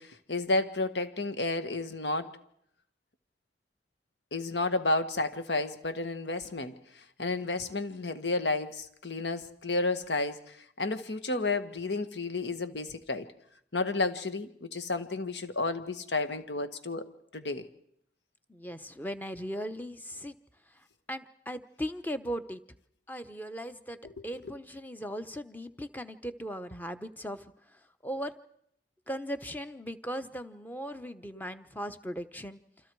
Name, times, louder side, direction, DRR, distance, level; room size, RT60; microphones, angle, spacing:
voice 1, 0.0-2.3 4.3-6.7 7.2-13.3 13.7-17.1 17.3-17.7, left 2 dB, 80° left, 9 dB, 1.7 m, -31 dB
voice 2, 18.5-20.4 20.7-22.6 23.1-24.0 24.2-28.3 29.1-32.6, equal, 10° left, 10 dB, 0.9 m, -38 dB
28.5 x 26.0 x 4.7 m, 0.71 s
head